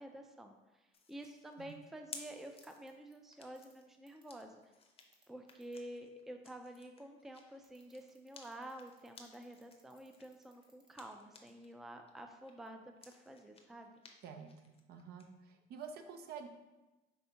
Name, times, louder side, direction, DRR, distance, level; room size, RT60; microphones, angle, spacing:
voice 1, 0.0-4.6 5.3-13.9, right 1 dB, ahead, 5 dB, 0.3 m, -50 dB
sound 1, 0.9-11.7 12.1-15.3, left 4 dB, 35° left, 0.6 m, -58 dB
sound 2, 2.7-2.9 3.6-3.7 4.1-4.2 5.0-5.8 7.6-11.0, right 2 dB, 25° right, 1.2 m, -70 dB
voice 2, 14.9-16.5, right 6 dB, 70° right, 6 dB, 0.6 m, -48 dB
5.4 x 3.4 x 2.8 m, 1.1 s
cardioid pair, 110°, 17 cm